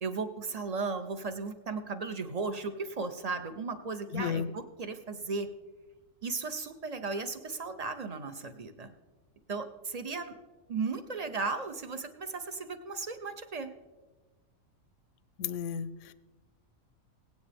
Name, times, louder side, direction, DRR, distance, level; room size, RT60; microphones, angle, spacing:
voice 1, 0.0-5.5 6.2-8.9 9.5-10.4 10.7-13.7, right 4 dB, 45° right, 9 dB, 0.5 m, -36 dB
voice 2, 4.1-4.5 15.4-16.1, left 8 dB, 70° left, 14 dB, 0.8 m, -33 dB
17.5 x 9.5 x 3.5 m, 1.2 s
omnidirectional pair, 1.5 m